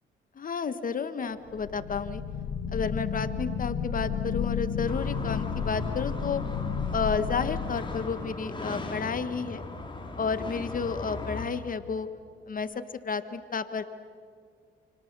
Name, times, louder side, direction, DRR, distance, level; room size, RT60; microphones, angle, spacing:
voice 1, 0.4-2.2 2.7-6.4 6.9-9.6 10.2-12.1 12.5-12.7 13.0-13.8, left 5 dB, 45° left, 11 dB, 1.4 m, -31 dB
sound 1, 1.5-8.5, left 6 dB, 75° left, 4.9 m, -32 dB
sound 2, 4.9-11.5, left 2 dB, 25° left, 4.5 m, -38 dB
29.0 x 29.0 x 6.8 m, 2.2 s
cardioid pair, 90°, 20 cm